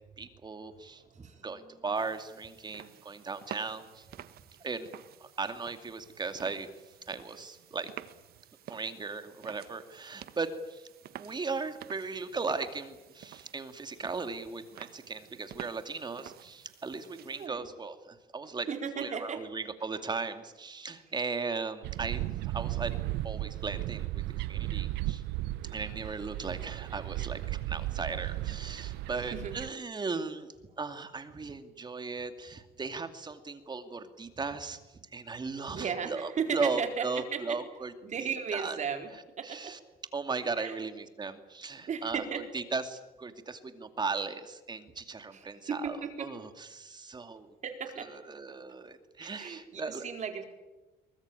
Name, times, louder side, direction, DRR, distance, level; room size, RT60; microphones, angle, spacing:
voice 1, 0.2-4.1 4.6-4.9 5.2-6.7 7.1-7.9 8.7-10.8 11.2-18.7 19.0-22.9 23.2-25.2 25.7-30.5 30.8-34.8 35.1-37.9 38.2-38.8 39.4-39.8 40.1-42.2 42.5-47.5 48.0-50.0, right 4 dB, 25° right, 8 dB, 2.5 m, -37 dB
voice 2, 1.0-1.9 17.4-17.6 18.7-19.5 22.2-22.3 29.1-29.6 35.7-37.6 38.0-39.1 39.4-39.8 40.6-40.8 41.9-42.4 45.3-46.3 47.6-48.1 49.2-50.5, right 6 dB, 45° right, 5 dB, 4.3 m, -36 dB
sound 1, 1.9-17.5, right 11 dB, 65° right, 1.3 m, -50 dB
sound 2, 21.8-29.7, right 16 dB, 90° right, 0.8 m, -35 dB
23.0 x 21.0 x 9.2 m, 1.1 s
cardioid pair, 110°, 17 cm